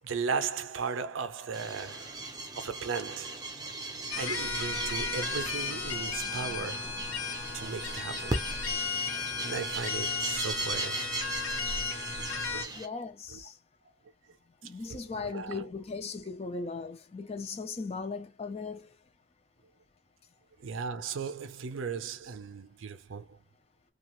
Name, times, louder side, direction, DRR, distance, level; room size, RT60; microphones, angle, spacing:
voice 1, 0.0-2.2 2.6-3.4 4.2-7.0 7.5-8.4 9.4-11.2 12.2-12.3 12.5-12.7 13.3-13.4 14.9-15.7 20.6-23.4, right 5 dB, 80° right, 0.5 m, -36 dB
sound 1, 1.5-12.9, right 2 dB, 20° right, 0.6 m, -38 dB
sound 2, 4.1-12.6, left 5 dB, 85° left, 0.8 m, -35 dB
voice 2, 12.7-13.6 14.6-19.0, left 4 dB, 30° left, 0.4 m, -38 dB
2.6 x 2.3 x 3.0 m
head